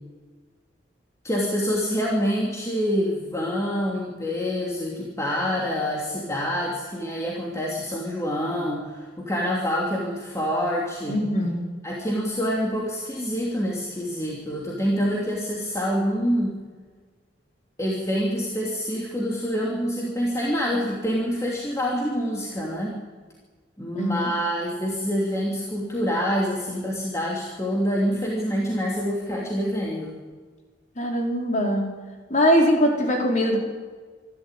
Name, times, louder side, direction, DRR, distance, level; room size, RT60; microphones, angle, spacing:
voice 1, 1.2-11.2 11.8-16.6 17.8-23.0 23.8-30.1, equal, 15° left, -4 dB, 3.0 m, -26 dB
voice 2, 11.1-11.6 23.9-24.3 31.0-31.9 32.3-33.6, equal, 40° left, 0 dB, 4.7 m, -21 dB
26.5 x 12.5 x 9.2 m, 1.4 s
head